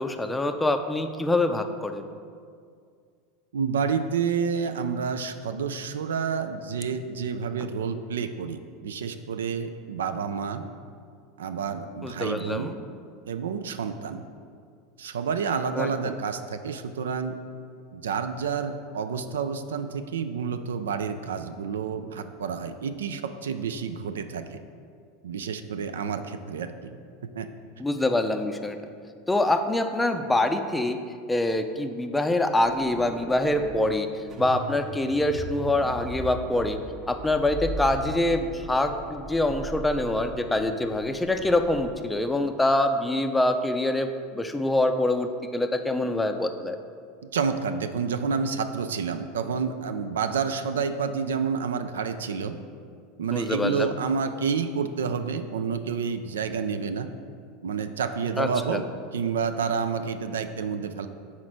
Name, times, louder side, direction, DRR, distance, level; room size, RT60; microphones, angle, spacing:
voice 1, 0.0-2.1 12.0-12.8 15.7-15.9 27.8-28.8 29.3-31.0 31.3-34.1 34.4-36.8 37.1-46.8 53.3-53.9 58.4-58.8, left 1 dB, 10° left, 7 dB, 0.4 m, -25 dB
voice 2, 3.5-10.6 11.4-12.7 13.3-14.2 15.0-17.4 17.9-24.6 25.2-27.0 27.2-27.5 47.3-52.6 53.2-57.1 57.6-58.8 59.1-61.1, right 6 dB, 75° right, 9 dB, 0.3 m, -29 dB
sound 1, 32.6-33.8 34.3-41.9, right 2 dB, 35° right, 0.9 m, -38 dB
4.8 x 4.2 x 5.9 m, 2.2 s
figure-of-eight pair, 85°, 0 cm